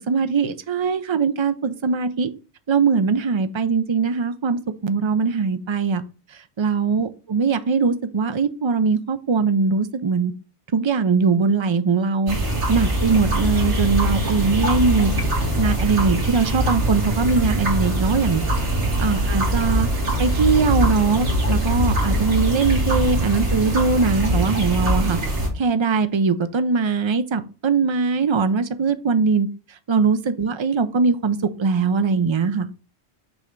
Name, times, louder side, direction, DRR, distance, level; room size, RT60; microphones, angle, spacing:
voice 1, 0.0-2.3 2.7-6.0 6.6-10.3 10.7-12.4 12.7-15.1 15.5-18.4 19.0-19.9 20.2-25.2 25.6-29.5 29.9-32.7, right 5 dB, 40° right, 0.4 m, -21 dB
sound 1, 12.3-25.5, equal, 80° right, 2.1 m, -22 dB
6.2 x 3.3 x 5.1 m
omnidirectional pair, 1.2 m